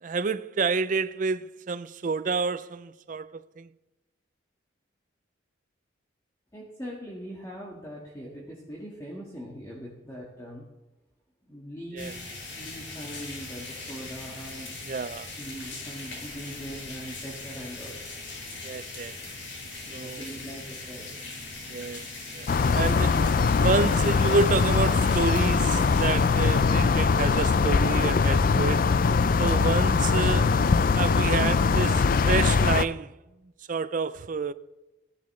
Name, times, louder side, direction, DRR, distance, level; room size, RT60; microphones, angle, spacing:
voice 1, 0.0-3.7 11.9-12.1 14.9-15.3 18.6-19.2 19.9-20.3 21.7-22.0 22.3-23.2 23.6-28.9 29.4-30.6 31.0-33.2 33.7-34.5, right 4 dB, 45° right, 0.4 m, -29 dB
voice 2, 6.5-10.7 11.5-12.2 12.5-14.8 15.4-18.0 19.8-21.1, equal, 20° left, 1.6 m, -41 dB
sound 1, 12.0-27.5, left 3 dB, 70° left, 4.2 m, -40 dB
sound 2, 22.5-32.8, left 4 dB, 45° left, 0.4 m, -22 dB
16.0 x 10.5 x 3.2 m
head